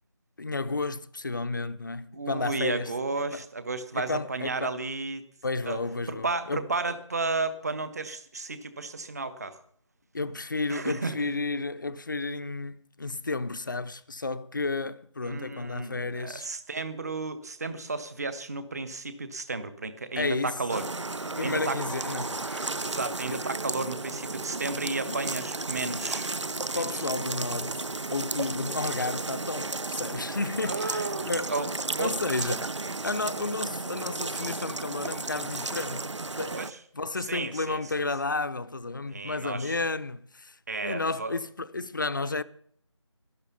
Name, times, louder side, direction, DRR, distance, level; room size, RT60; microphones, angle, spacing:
voice 1, 0.4-2.9 3.3-3.5 3.9-4.8 5.4-6.7 10.1-16.5 20.2-20.6 21.4-22.7 23.3-23.4 25.1-25.2 26.7-31.5 32.0-32.8 33.0-36.1 36.3-36.7 36.9-40.6 40.8-42.4, left 3 dB, 40° left, 0.6 m, -32 dB
voice 2, 2.1-5.2 5.7-5.8 6.1-9.6 10.7-11.2 15.2-21.8 22.8-26.3 26.7-26.9 30.6-31.7 32.0-32.1 36.5-36.8 37.2-38.0 39.1-39.7 40.7-41.3, right 3 dB, 30° right, 1.1 m, -33 dB
sound 1, 20.7-36.7, right 3 dB, 70° right, 0.7 m, -34 dB
12.5 x 12.0 x 6.9 m
figure-of-eight pair, 165°, 16 cm